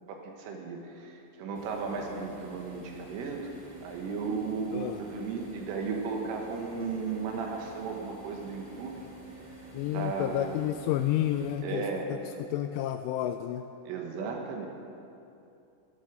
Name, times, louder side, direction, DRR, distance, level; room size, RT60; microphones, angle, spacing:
voice 1, 0.1-3.4 3.8-9.0 9.9-10.6 11.6-12.1 13.9-14.7, right 5 dB, 75° right, 2 dB, 4.0 m, -35 dB
sound 1, 1.5-11.5, right 3 dB, 15° right, 1.6 m, -49 dB
voice 2, 4.7-5.0 9.7-11.9 12.1-13.6, left 12 dB, 85° left, 8 dB, 2.8 m, -30 dB
14.0 x 11.5 x 8.3 m, 2.7 s
omnidirectional pair, 6.0 m